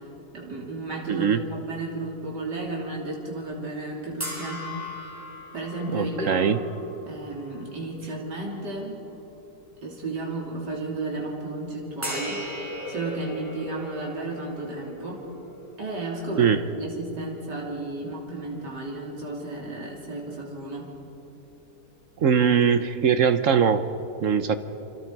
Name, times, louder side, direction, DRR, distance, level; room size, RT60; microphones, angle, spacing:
voice 1, 0.3-4.6 5.5-6.6 7.1-9.0 9.8-15.2 15.8-16.5 16.7-20.9, right 2 dB, 85° right, -3 dB, 3.7 m, -33 dB
sound 1, 4.2-7.7 8.3-8.4 12.0-18.4, equal, 10° right, 5.0 m, -38 dB
voice 2, 5.9-6.6 16.4-16.6 22.2-23.9 24.2-24.6, right 7 dB, 55° right, 10 dB, 1.0 m, -21 dB
28.0 x 26.5 x 4.7 m, 3.0 s
omnidirectional pair, 1.8 m